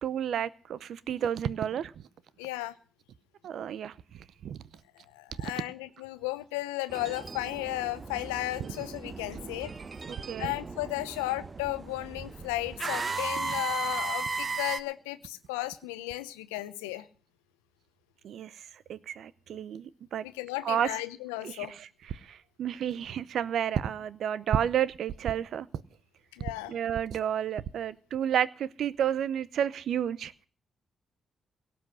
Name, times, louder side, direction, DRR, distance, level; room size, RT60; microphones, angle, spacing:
voice 1, 0.0-2.0 3.4-3.9 4.4-4.6 8.6-8.7 10.1-10.5 13.4-13.5 18.2-20.2 20.6-20.9 21.4-21.9 22.2-25.7 26.7-30.3, right 9 dB, 70° right, 0.6 m, -31 dB
voice 2, 2.4-2.7 5.1-9.7 10.4-17.1 20.2-21.7 26.3-26.7, left 17 dB, 90° left, 0.7 m, -34 dB
sound 1, 6.9-14.8, right 4 dB, 45° right, 0.9 m, -36 dB
17.5 x 6.1 x 9.9 m
hypercardioid pair, 40°, 0 cm